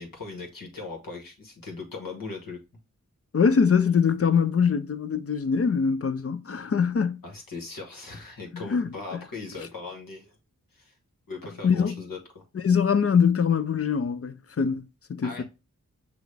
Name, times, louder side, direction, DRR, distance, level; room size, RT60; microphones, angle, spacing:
voice 1, 0.0-2.6 7.2-10.3 10.7-10.9 11.3-12.4 15.2-15.4, left 3 dB, 75° left, 1.5 m, -39 dB
voice 2, 3.3-7.2 8.5-9.2 11.6-12.0 12.5-15.4, left 6 dB, 40° left, 0.6 m, -23 dB
6.0 x 2.4 x 3.3 m
cardioid pair, 45°, 34 cm